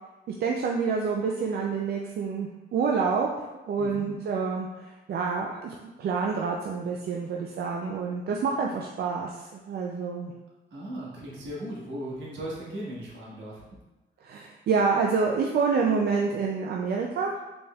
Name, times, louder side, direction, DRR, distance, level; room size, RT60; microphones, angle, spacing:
voice 1, 0.4-3.3 3.7-4.7 5.1-10.3 14.2-17.3, right 5 dB, 55° right, 0 dB, 0.4 m, -27 dB
voice 2, 3.8-4.1 10.7-13.6, right 1 dB, 70° right, -5 dB, 1.4 m, -37 dB
4.2 x 3.3 x 2.3 m, 1.1 s
cardioid pair, 90°, 20 cm